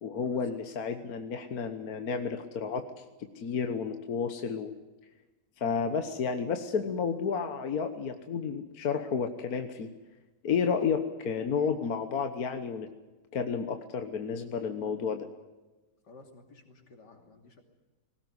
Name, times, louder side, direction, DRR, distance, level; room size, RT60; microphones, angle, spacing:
voice 1, 0.0-2.8 3.4-4.7 5.6-9.9 10.4-12.9 13.3-15.3, left 6 dB, 60° left, 7 dB, 1.6 m, -31 dB
voice 2, 10.5-10.9 16.1-17.6, left 2 dB, 80° left, 4 dB, 3.5 m, -51 dB
20.5 x 18.0 x 9.7 m, 1.2 s
omnidirectional pair, 1.8 m